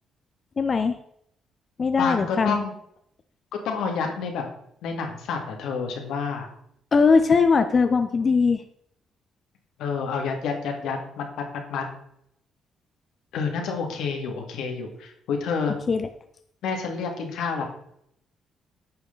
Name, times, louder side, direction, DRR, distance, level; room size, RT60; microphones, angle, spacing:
voice 1, 0.6-1.0 1.8-2.6 6.9-8.6 15.9-16.1, left 5 dB, 35° left, 8 dB, 0.6 m, -20 dB
voice 2, 2.0-2.7 3.6-4.4 4.8-6.5 9.8-11.9 13.3-15.8 16.6-17.7, left 5 dB, 85° left, 3 dB, 2.0 m, -29 dB
9.8 x 6.4 x 3.8 m, 0.72 s
cardioid pair, 115°, 0 cm